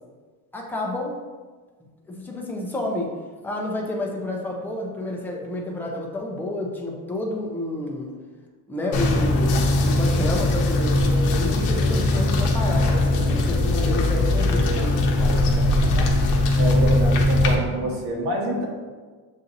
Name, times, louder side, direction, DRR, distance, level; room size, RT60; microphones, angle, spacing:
voice 1, 0.5-1.2 2.1-3.1 3.4-8.1 8.7-16.2, left 1 dB, 5° left, -1 dB, 0.5 m, -30 dB
sound 1, 8.9-17.6, left 2 dB, 65° left, 0.8 m, -20 dB
voice 2, 16.6-18.6, right 1 dB, 60° right, -2 dB, 1.3 m, -26 dB
7.1 x 2.7 x 2.6 m, 1.4 s
cardioid pair, 130°, 44 cm